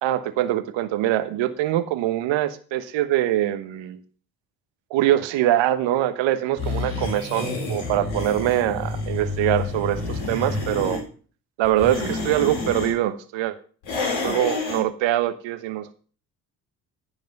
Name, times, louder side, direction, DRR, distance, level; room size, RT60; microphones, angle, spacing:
voice 1, 0.0-4.0 4.9-11.0 11.6-13.5 14.2-15.9, right 13 dB, 60° right, 11 dB, 1.2 m, -23 dB
sound 1, 6.6-11.0 11.6-12.9 13.8-14.8, left 3 dB, 65° left, 4.3 m, -29 dB
15.5 x 5.3 x 5.4 m, 0.41 s
hypercardioid pair, 50°, 50 cm